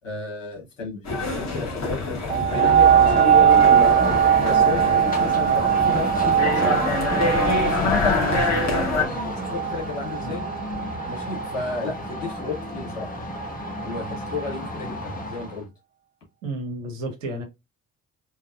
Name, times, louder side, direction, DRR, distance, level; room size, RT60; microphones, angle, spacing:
voice 1, 0.0-3.9 4.4-6.8 7.2-8.9 9.2-10.5 11.0-13.1 13.8-15.7, left 3 dB, 85° left, 2.3 m, -33 dB
sound 1, 1.0-9.0, left 3 dB, 45° left, 2.4 m, -26 dB
sound 2, 2.3-11.6 12.2-12.3, right 9 dB, 25° right, 0.4 m, -20 dB
sound 3, 2.8-15.6, equal, 20° left, 2.2 m, -31 dB
voice 2, 16.4-17.4, right 1 dB, 85° right, 1.2 m, -31 dB
4.5 x 3.6 x 2.4 m
figure-of-eight pair, 45°, 37 cm